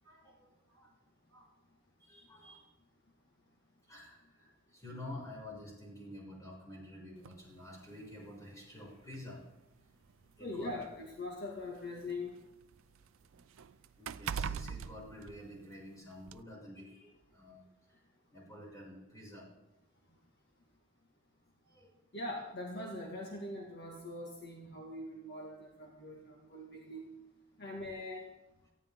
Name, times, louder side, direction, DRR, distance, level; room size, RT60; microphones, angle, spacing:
voice 1, 0.0-0.9 1.3-1.5 2.0-2.7 3.8-9.5 10.4-10.7 14.0-18.0 18.3-19.5 21.6-21.9, left 1 dB, 15° left, -4 dB, 6.5 m, -50 dB
sound 1, 7.2-7.4 8.5-8.6 9.0-9.1 10.1-12.1 12.4-15.9 16.3-16.4, right 7 dB, 70° right, 0.4 m, -42 dB
voice 2, 10.4-12.4 22.1-27.1 27.6-28.3, left 2 dB, 50° left, -1 dB, 1.9 m, -42 dB
18.5 x 15.5 x 3.7 m, 0.94 s
head